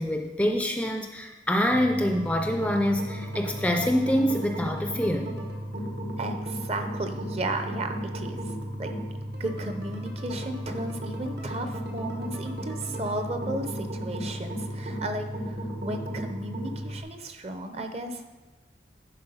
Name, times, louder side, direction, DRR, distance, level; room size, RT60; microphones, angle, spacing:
voice 1, 0.0-5.3 12.9-13.0, equal, 5° left, 4 dB, 0.4 m, -26 dB
sound 1, 1.7-17.0, equal, 75° right, 1.7 m, -35 dB
voice 2, 6.2-8.4 8.8-8.9 9.4-18.4, right 1 dB, 35° right, 7 dB, 0.7 m, -34 dB
10.5 x 4.3 x 5.5 m, 1.2 s
head